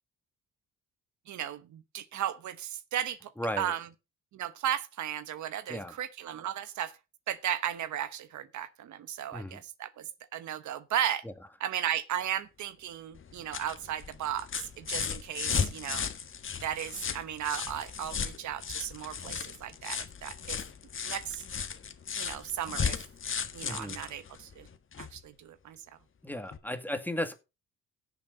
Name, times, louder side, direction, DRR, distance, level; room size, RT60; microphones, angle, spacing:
voice 1, 1.3-3.3 3.6-3.9 4.3-7.0 7.3-11.2 11.6-16.1 16.6-20.6 21.0-21.4 22.2-23.0 23.5-24.7 25.0-25.8, right 10 dB, 70° right, 1.1 m, -35 dB
voice 2, 3.4-3.7 5.7-5.9 9.3-9.6 23.6-24.0 26.2-27.3, left 1 dB, 5° left, 2.1 m, -35 dB
sound 1, 13.1-25.2 26.5-26.6, left 6 dB, 40° left, 1.5 m, -36 dB
16.5 x 7.1 x 4.0 m
cardioid pair, 90°, 30 cm